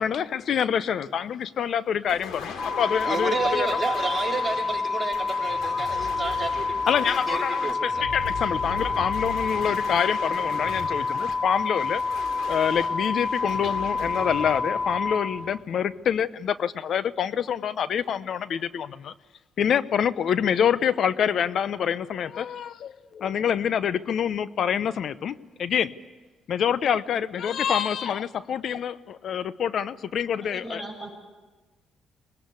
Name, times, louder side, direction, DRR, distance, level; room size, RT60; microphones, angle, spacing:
voice 1, 0.0-3.7 5.7-6.0 6.9-12.0 12.5-19.1 19.6-25.9 26.5-30.8, left 8 dB, 65° left, 16 dB, 0.9 m, -26 dB
sound 1, 2.1-16.0, left 5 dB, 80° left, 3.1 m, -39 dB
sound 2, 2.6-15.2, left 4 dB, 40° left, 3.4 m, -28 dB
voice 2, 3.0-6.8 7.0-8.0, right 4 dB, 25° right, -2 dB, 4.5 m, -30 dB
voice 3, 30.4-31.1, right 1 dB, 10° left, -2 dB, 7.1 m, -38 dB
24.0 x 20.0 x 8.3 m, 1.3 s
cardioid pair, 90°, 0 cm